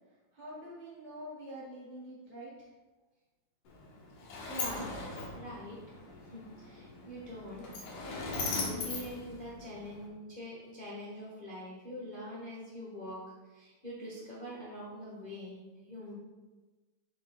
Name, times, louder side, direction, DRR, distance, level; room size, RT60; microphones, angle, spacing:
voice 1, 0.3-2.7, equal, 20° left, -8 dB, 1.5 m, -46 dB
Sliding door, 3.7-10.1, left 3 dB, 85° left, 2.7 m, -40 dB
voice 2, 4.4-5.8 6.2-7.6 8.0-13.2 13.5-15.6 15.8-16.1, equal, 55° left, -7 dB, 0.5 m, -44 dB
7.6 x 7.1 x 2.3 m, 1.2 s
omnidirectional pair, 3.4 m